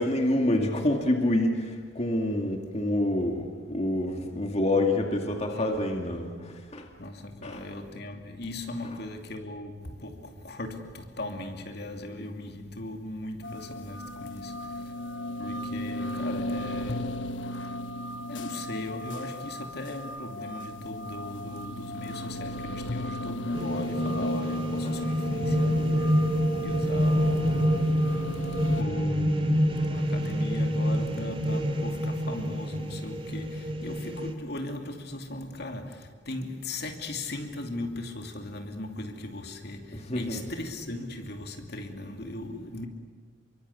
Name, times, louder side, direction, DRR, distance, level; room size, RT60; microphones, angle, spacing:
voice 1, 0.0-1.6 2.0-6.8 7.4-7.6 24.8-24.9 39.9-40.4, left 1 dB, 35° left, 2.3 m, -27 dB
voice 2, 5.3-5.9 7.0-14.9 15.4-17.2 17.8-27.8 28.1-42.9, left 1 dB, 60° left, 2.6 m, -38 dB
sound 1, 13.4-28.8, left 1 dB, 85° left, 1.2 m, -35 dB
sound 2, 23.5-34.3, equal, 30° right, 2.6 m, -27 dB
28.0 x 24.0 x 8.4 m
head